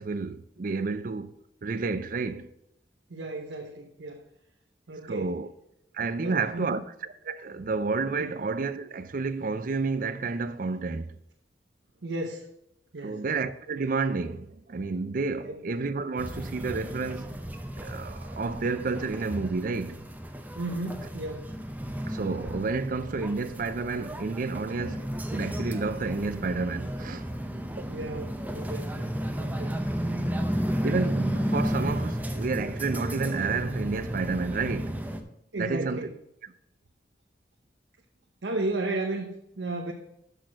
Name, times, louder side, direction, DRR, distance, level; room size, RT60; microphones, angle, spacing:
voice 1, 0.0-1.3 1.6-2.5 4.9-5.5 5.9-6.8 7.3-11.1 13.0-17.4 17.8-20.0 22.1-27.3 27.8-27.9 30.8-35.0 35.6-36.1, right 4 dB, 50° right, 0.4 m, -30 dB
voice 2, 3.1-4.3 4.9-5.4 6.2-6.8 8.2-8.3 12.0-12.5 12.9-13.2 15.4-15.6 20.6-21.5 27.9-29.8 30.6-30.8 35.5-36.2 38.4-39.9, right 2 dB, 85° right, 0.8 m, -34 dB
sound 1, 16.2-35.2, equal, 10° right, 0.6 m, -33 dB
6.4 x 6.4 x 6.1 m
head